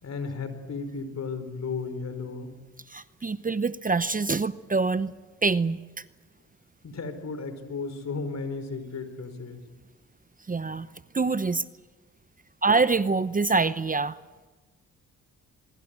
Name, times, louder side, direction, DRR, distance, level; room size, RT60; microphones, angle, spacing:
voice 1, 0.0-2.6 6.8-9.6, left 4 dB, 55° left, 9 dB, 4.7 m, -34 dB
voice 2, 2.9-5.1 5.4-5.8 10.5-10.9 11.1-11.6 12.6-14.2, right 4 dB, 25° right, 14 dB, 0.8 m, -25 dB
24.0 x 22.0 x 8.3 m, 1.2 s
cardioid pair, 65°, 32 cm